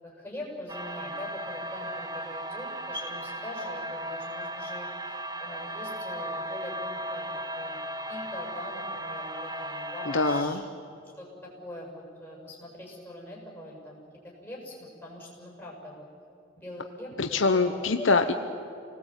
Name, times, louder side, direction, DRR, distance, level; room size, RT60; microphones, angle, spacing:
voice 1, 0.0-7.3 7.6-7.8 8.1-10.6 11.2-14.0 14.2-16.0 16.6-17.1 17.5-18.1, left 1 dB, 10° left, -3 dB, 7.5 m, -42 dB
sound 1, 0.7-10.4, right 1 dB, 20° right, 1.0 m, -36 dB
voice 2, 10.0-10.6 17.2-18.3, left 3 dB, 80° left, 6 dB, 1.0 m, -24 dB
28.5 x 19.5 x 9.1 m, 2.7 s
head